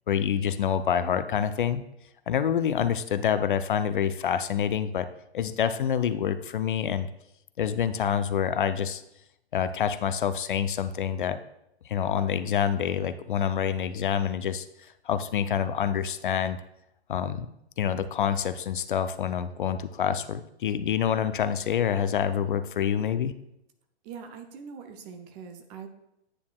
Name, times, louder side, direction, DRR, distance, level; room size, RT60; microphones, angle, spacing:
voice 1, 0.1-1.8 2.3-5.1 5.3-7.1 7.6-9.0 9.5-11.4 11.9-14.7 15.1-16.6 17.1-17.5 17.8-23.4, left 8 dB, 50° left, 12 dB, 0.5 m, -27 dB
voice 2, 24.0-25.9, right 6 dB, 15° right, 6 dB, 0.5 m, -42 dB
9.7 x 8.3 x 2.3 m, 0.82 s
figure-of-eight pair, 115°, 33 cm